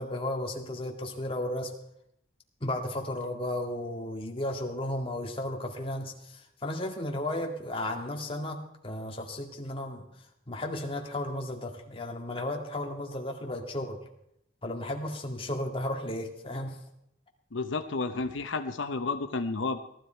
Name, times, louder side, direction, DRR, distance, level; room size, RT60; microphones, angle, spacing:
voice 1, 0.0-1.7 2.6-10.1 10.5-14.0 14.6-16.8, left 1 dB, 30° left, 1 dB, 2.1 m, -34 dB
voice 2, 17.5-19.8, left 3 dB, 85° left, 8 dB, 0.8 m, -31 dB
18.0 x 13.0 x 4.5 m, 0.76 s
head